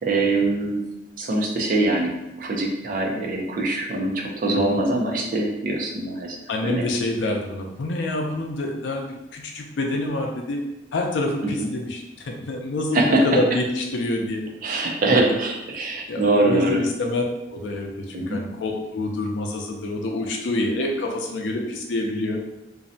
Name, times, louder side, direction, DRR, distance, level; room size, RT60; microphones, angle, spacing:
voice 1, 0.0-0.8 1.2-2.1 2.4-6.4 6.6-6.9 11.4-11.7 12.9-13.3 14.6-16.8 18.1-18.4, right 2 dB, 50° right, 0 dB, 0.4 m, -23 dB
voice 2, 6.5-9.0 9.3-10.6 10.9-14.4 16.1-17.2 17.5-22.4, left 2 dB, 80° left, 2 dB, 0.4 m, -27 dB
2.6 x 2.1 x 2.6 m, 0.91 s
head